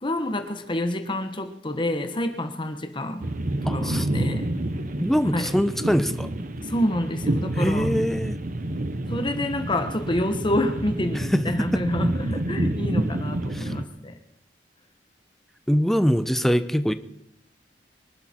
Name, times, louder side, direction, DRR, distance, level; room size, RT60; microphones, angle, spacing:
voice 1, 0.0-3.3 3.6-4.5 5.3-5.5 6.6-7.9 9.1-14.2, left 1 dB, 25° left, 7 dB, 1.2 m, -28 dB
sound 1, 3.2-13.8, right 1 dB, 50° right, 1.1 m, -28 dB
voice 2, 3.7-4.1 5.0-6.3 7.6-8.4 11.1-11.4 11.7-11.8 13.5-13.7 15.7-16.9, equal, ahead, 11 dB, 0.8 m, -23 dB
24.0 x 12.0 x 4.5 m, 0.80 s
head